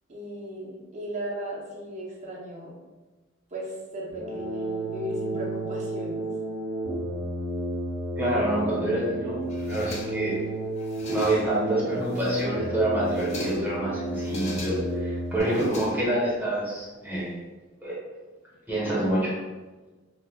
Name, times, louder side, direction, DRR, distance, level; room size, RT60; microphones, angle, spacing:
voice 1, 0.1-2.7 3.5-6.3, right 1 dB, 35° right, -3 dB, 0.8 m, -36 dB
sound 1, 4.1-15.4, right 1 dB, 80° right, 1.2 m, -32 dB
voice 2, 8.2-10.4 11.1-17.3 17.8-17.9 18.7-19.3, right 1 dB, 10° right, -7 dB, 1.2 m, -27 dB
sound 2, 9.5-10.4 10.8-11.6 12.0-12.6 13.0-13.8 14.1-15.0 15.4-16.4, left 1 dB, 35° left, 0.7 m, -39 dB
5.3 x 2.4 x 2.3 m, 1.2 s
head